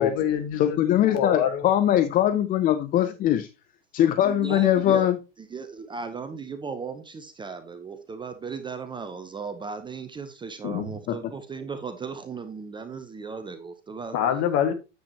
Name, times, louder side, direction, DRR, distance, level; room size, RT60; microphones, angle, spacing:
voice 1, 0.0-1.7 4.8-5.0 10.6-10.9 14.1-14.7, left 9 dB, 40° left, 8 dB, 1.8 m, -26 dB
voice 2, 0.6-3.5 3.9-5.2 11.1-11.2, left 11 dB, 20° left, 11 dB, 0.5 m, -21 dB
voice 3, 4.2-5.1 5.4-14.2, right 5 dB, 10° right, 9 dB, 0.7 m, -36 dB
9.4 x 7.8 x 2.9 m, 0.27 s
hypercardioid pair, 100°, 39 cm